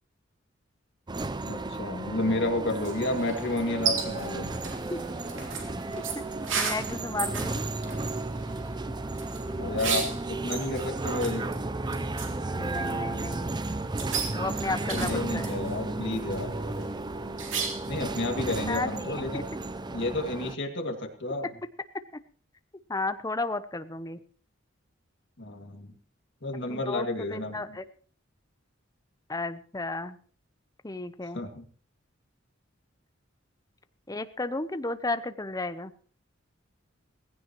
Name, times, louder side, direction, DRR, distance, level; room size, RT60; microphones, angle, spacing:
sound 1, 1.1-20.6, right 2 dB, 20° right, 0.6 m, -34 dB
voice 1, 1.4-4.6 9.6-11.6 14.8-16.6 17.8-19.4 19.9-21.5 25.4-25.9 26.4-27.8 31.3-31.6, left 2 dB, 60° left, 3 dB, 2.3 m, -31 dB
sound 2, 2.8-18.0, right 6 dB, 70° right, 2.9 m, -36 dB
voice 2, 5.9-6.2 6.6-7.6 12.5-13.5 14.3-15.5 18.7-19.4 22.9-24.2 26.7-27.9 29.3-30.2 30.8-31.4 34.1-35.9, left 2 dB, 20° left, 11 dB, 0.7 m, -33 dB
18.5 x 16.0 x 3.1 m, 0.44 s
head